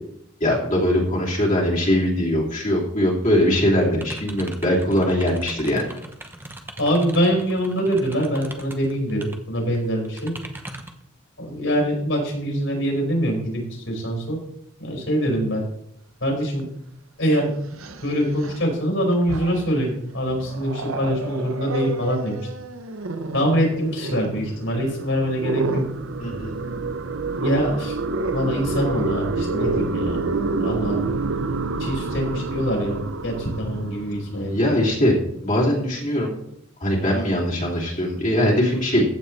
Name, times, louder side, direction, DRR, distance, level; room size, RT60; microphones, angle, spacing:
voice 1, 0.4-5.8 26.2-26.5 34.3-35.2 35.4-36.3 36.8-39.0, equal, 40° left, -5 dB, 2.8 m, -21 dB
sound 1, 3.9-9.4 9.7-11.0, right 1 dB, 10° right, 0.9 m, -39 dB
voice 2, 6.8-10.3 11.4-14.4 14.8-15.6 16.2-16.7 17.2-17.5 18.0-22.4 23.3-25.9 27.3-28.0 28.3-30.3 30.6-31.0 31.8-33.0 33.2-34.7, equal, 70° left, -1 dB, 5.2 m, -24 dB
Growling, 16.6-16.7 17.6-18.7 19.1-19.8 20.3-34.8, right 2 dB, 85° right, 1.0 m, -32 dB
sound 2, 24.0-34.6, right 4 dB, 65° right, 0.6 m, -29 dB
15.0 x 8.9 x 3.3 m, 0.77 s
head